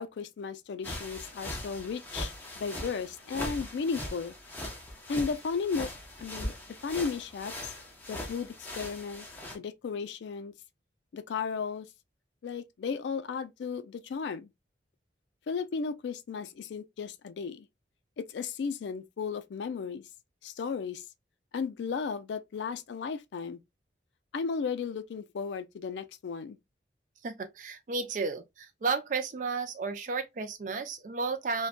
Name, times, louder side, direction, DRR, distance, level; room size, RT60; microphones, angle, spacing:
voice 1, 0.0-4.3 5.1-5.9 6.2-7.7 8.1-9.3 9.5-10.5 11.1-11.9 12.4-14.5 15.5-17.7 18.2-20.0 20.4-21.0 21.5-23.6 24.3-26.6, left 5 dB, 75° left, 0.3 m, -35 dB
sound 1, 0.8-9.5, left 1 dB, 10° left, 0.6 m, -40 dB
voice 2, 27.2-31.7, right 4 dB, 45° right, 0.4 m, -33 dB
2.5 x 2.2 x 2.4 m
head